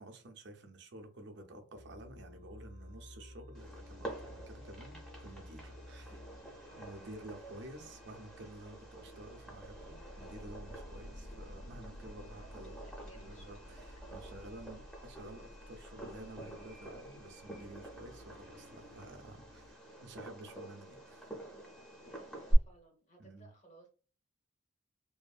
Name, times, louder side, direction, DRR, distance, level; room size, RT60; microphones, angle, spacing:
voice 1, 0.0-6.3 6.8-12.8 13.2-21.4 23.2-23.5, right 1 dB, 60° right, 0.5 m, -51 dB
sound 1, 1.7-19.7, left 1 dB, 55° left, 0.5 m, -53 dB
Fireworks, 3.5-22.5, equal, 5° left, 0.6 m, -46 dB
voice 2, 6.7-7.0 12.3-13.8 22.0-23.9, right 2 dB, 35° left, 0.9 m, -60 dB
sound 2, 9.7-16.9, left 3 dB, 80° left, 0.8 m, -66 dB
2.7 x 2.5 x 2.3 m
head